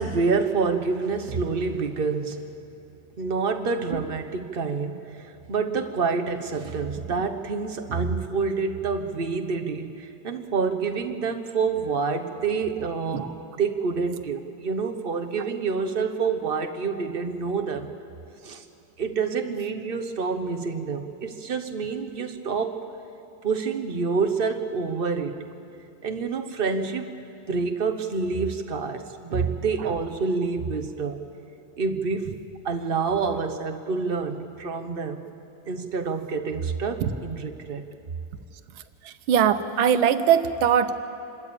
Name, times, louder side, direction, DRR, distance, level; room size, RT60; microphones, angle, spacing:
voice 1, 0.0-2.4 3.2-13.3 13.6-17.9 18.4-18.6 19.0-22.8 23.4-25.4 26.0-27.1 27.5-31.2 31.8-32.4 32.6-35.3 35.7-37.8, right 5 dB, 35° right, 6 dB, 1.0 m, -27 dB
voice 2, 39.3-40.9, right 8 dB, 90° right, 11 dB, 1.7 m, -20 dB
27.0 x 13.0 x 8.8 m, 3.0 s
omnidirectional pair, 2.1 m